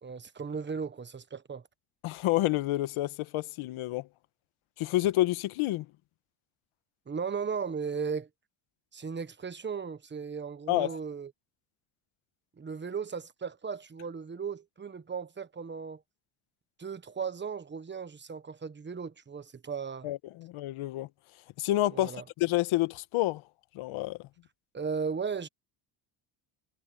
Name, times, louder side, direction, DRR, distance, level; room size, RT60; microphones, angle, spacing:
voice 1, 0.0-1.6 7.1-8.3 8.9-11.3 12.6-16.0 16.8-20.1 21.9-22.2 24.7-25.5, right 6 dB, 20° right, 1.2 m, -36 dB
voice 2, 2.0-4.1 4.8-5.9 10.7-10.9 20.0-21.1 21.6-22.1 22.4-23.4 23.7-24.2, left 16 dB, 75° left, 1.4 m, -28 dB
cardioid pair, 105°, 49 cm